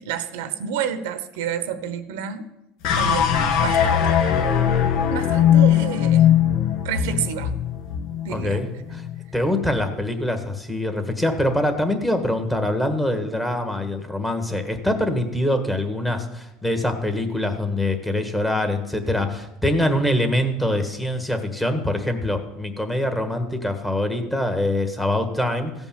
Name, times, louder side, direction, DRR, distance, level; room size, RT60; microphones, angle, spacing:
voice 1, 0.0-2.5 3.0-4.2 5.1-6.3 6.8-7.6 8.2-8.6, right 9 dB, 90° right, 11 dB, 1.0 m, -29 dB
sound 1, 2.8-9.2, left 9 dB, 70° left, 1.3 m, -20 dB
voice 2, 8.3-9.1 9.3-25.7, left 1 dB, 10° left, 6 dB, 1.5 m, -24 dB
15.5 x 5.3 x 7.4 m, 0.93 s
supercardioid pair, 125°, 0 cm